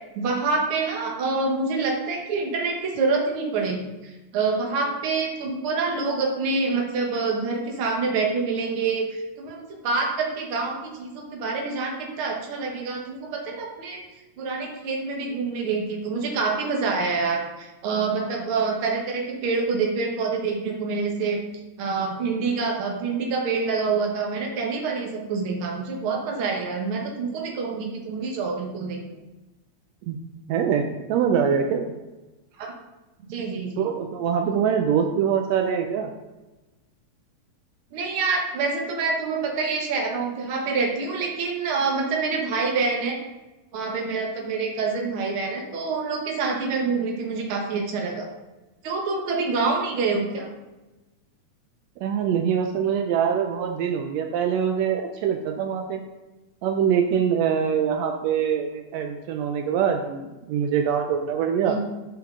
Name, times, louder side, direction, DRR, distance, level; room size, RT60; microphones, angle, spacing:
voice 1, 0.1-3.8 4.0-14.0 14.4-21.4 21.8-29.0 32.6-32.7 33.3-33.9 37.9-43.2 43.7-48.3 48.8-50.5 61.7-61.8, right 4 dB, 55° right, 0 dB, 1.6 m, -26 dB
voice 2, 30.5-31.9 33.8-36.1 52.0-56.0 56.6-61.8, right 7 dB, 85° right, 4 dB, 1.5 m, -24 dB
7.9 x 5.7 x 3.8 m, 1.1 s
omnidirectional pair, 3.7 m